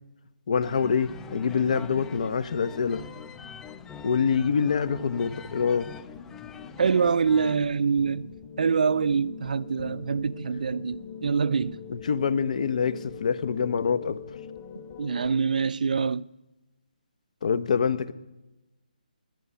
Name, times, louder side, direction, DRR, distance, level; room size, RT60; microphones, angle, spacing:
voice 1, 0.5-3.0 4.0-5.9 11.9-14.2 17.4-18.1, left 6 dB, 50° left, 0.9 m, -25 dB
sound 1, 0.6-7.6, left 7 dB, 10° left, 0.4 m, -44 dB
sound 2, 1.0-15.4, left 7 dB, 25° left, 1.8 m, -44 dB
voice 2, 6.8-11.8 15.0-16.3, right 5 dB, 60° right, 0.5 m, -25 dB
19.0 x 10.5 x 5.7 m
hypercardioid pair, 160°, 5 cm